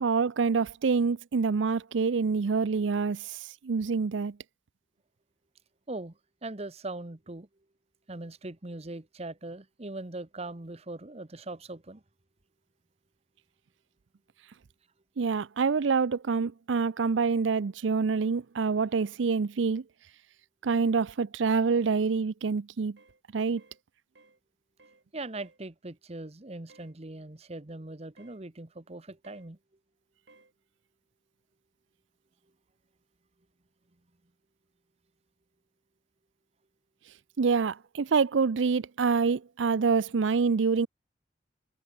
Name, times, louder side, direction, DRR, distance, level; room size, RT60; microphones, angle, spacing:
voice 1, 0.0-4.4 15.2-19.8 20.6-23.0 23.3-23.6 37.4-40.9, right 5 dB, 90° right, 0.5 m, -26 dB
voice 2, 5.9-7.5 8.1-12.0 25.1-29.6, right 2 dB, 35° right, 1.1 m, -40 dB
sound 1, 23.0-23.2 23.6-23.8 24.2-24.4 24.8-25.0 25.3-25.6 26.7-26.9 28.2-28.4 29.2-29.5 30.3-30.5, right 3 dB, 70° right, 4.8 m, -58 dB
head